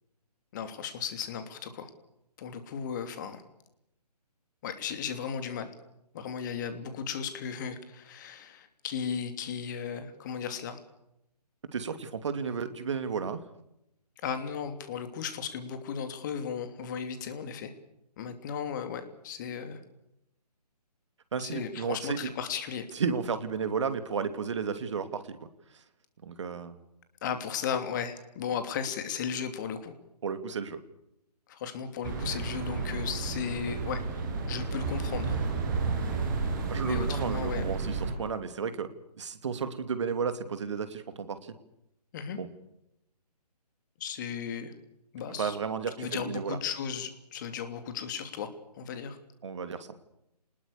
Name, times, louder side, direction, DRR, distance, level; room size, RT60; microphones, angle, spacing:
voice 1, 0.5-1.9 2.4-3.4 4.6-5.7 6.1-10.8 14.2-17.7 18.2-19.8 21.4-22.9 27.2-29.9 31.5-34.0 34.5-35.3 36.8-37.8 42.1-42.4 44.0-44.7 45.1-45.6 46.0-48.5 48.8-49.2, left 7 dB, 30° left, 9 dB, 3.0 m, -35 dB
voice 2, 11.7-13.4 21.3-22.3 22.9-25.4 26.2-26.8 30.2-30.8 36.7-38.9 39.2-41.6 42.4-42.5 45.4-46.6 49.4-49.9, right 6 dB, 45° right, 11 dB, 2.7 m, -33 dB
sound 1, 32.0-38.1, right 4 dB, 30° right, 5.8 m, -32 dB
28.0 x 20.5 x 6.9 m, 0.84 s
figure-of-eight pair, 140°, 21 cm